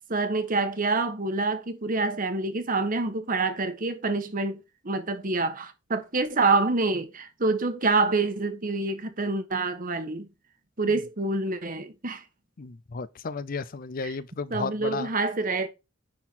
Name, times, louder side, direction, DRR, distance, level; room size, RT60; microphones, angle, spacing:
voice 1, 0.1-10.3 10.8-12.2 14.0-14.2 14.5-15.7, right 3 dB, 45° right, 1.3 m, -27 dB
voice 2, 12.6-15.1, left 4 dB, 45° left, 0.5 m, -33 dB
9.8 x 4.5 x 4.2 m
head